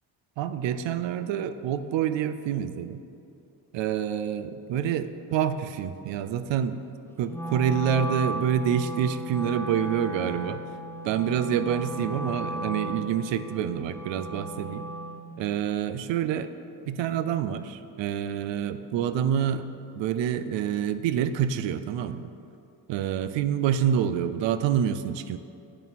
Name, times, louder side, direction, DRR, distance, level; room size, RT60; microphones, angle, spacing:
voice 1, 0.4-3.0 3.7-6.8 7.2-10.6 11.0-14.9 15.4-16.5 16.9-19.6 19.9-22.2 22.9-25.4, right 9 dB, 65° right, 12 dB, 0.6 m, -27 dB
Wind instrument woodwind instrument, 7.3-15.3, right 1 dB, 5° left, 0.7 m, -35 dB
8.0 x 6.8 x 4.2 m, 2.6 s
supercardioid pair, 60°, 49 cm